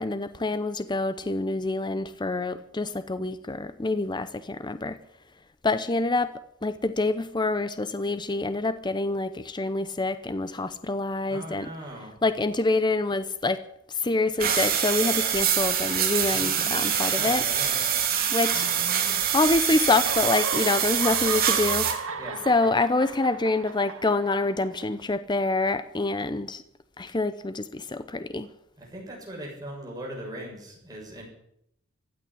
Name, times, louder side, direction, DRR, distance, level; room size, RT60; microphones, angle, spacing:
voice 1, 0.0-5.0 5.6-6.3 6.6-11.7 12.2-13.6 13.9-17.4 18.3-19.0 19.3-22.0 22.5-26.6 27.0-28.5, left 2 dB, 20° left, 12 dB, 0.7 m, -26 dB
voice 2, 11.3-12.1 17.1-17.8 22.2-22.5 28.8-31.2, right 1 dB, 15° right, -3 dB, 7.0 m, -39 dB
sound 1, 14.4-21.9, right 8 dB, 45° right, 3.2 m, -25 dB
sound 2, 18.4-19.6 19.8-24.8, right 5 dB, 65° right, 1.7 m, -36 dB
16.0 x 9.1 x 9.9 m, 0.74 s
head